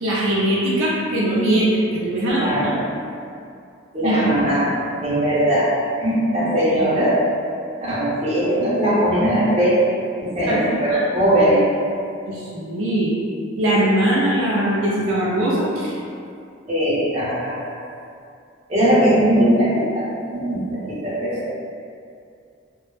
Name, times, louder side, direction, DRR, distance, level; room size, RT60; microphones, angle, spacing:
voice 1, 0.0-2.8 4.0-4.5 6.6-7.0 10.5-11.0 12.3-13.1 13.6-15.9, right 1 dB, 80° right, -6 dB, 0.4 m, -21 dB
voice 2, 2.3-2.8 3.9-4.7 5.0-5.7 6.0-7.2 7.8-9.8 10.2-11.6 16.7-17.7 18.7-20.0 20.3-21.4, equal, 30° right, -10 dB, 0.7 m, -19 dB
2.1 x 2.0 x 3.0 m, 2.4 s
head